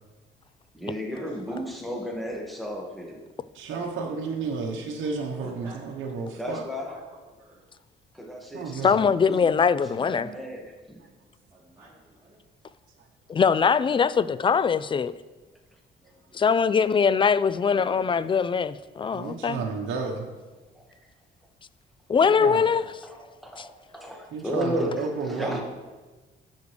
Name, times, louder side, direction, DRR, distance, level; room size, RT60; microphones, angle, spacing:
voice 1, 0.1-2.4 3.9-4.1 5.4-5.8 6.4-7.6 11.5-12.4 16.0-17.1 22.1-22.9, right 1 dB, 15° right, 3.3 m, -50 dB
voice 2, 0.7-3.3 6.4-6.9 8.1-9.5 9.8-11.1 15.7-15.8 17.7-18.1 20.7-20.8 23.0-25.6, equal, ahead, 1.9 m, -34 dB
voice 3, 3.5-6.6 8.5-9.1 13.0-13.1 19.1-20.3 22.4-22.6 24.3-25.6, right 4 dB, 80° right, 1.1 m, -32 dB
voice 4, 8.8-10.3 13.3-15.1 16.3-19.6 22.1-22.8, left 6 dB, 25° left, 0.3 m, -22 dB
13.0 x 6.6 x 3.3 m
cardioid pair, 90°, 20 cm